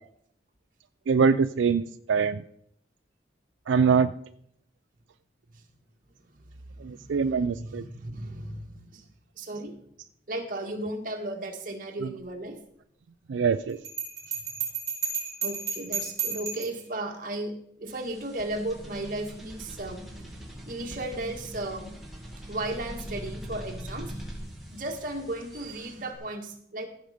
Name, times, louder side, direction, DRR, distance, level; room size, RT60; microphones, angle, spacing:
voice 1, 1.1-2.4 3.7-4.1 6.8-7.8 13.3-13.8, right 6 dB, 85° right, 10 dB, 0.4 m, -23 dB
voice 2, 6.3-9.0 9.4-9.8 10.3-12.6 14.3-14.4 15.4-20.1 20.7-21.9 22.5-24.1 24.7-26.9, right 1 dB, 45° right, 2 dB, 1.7 m, -35 dB
Bell, 13.8-16.8, right 6 dB, 20° right, 4.0 m, -32 dB
sound 1, 17.9-26.2, equal, ahead, 2.1 m, -42 dB
15.0 x 6.3 x 5.2 m, 0.69 s
head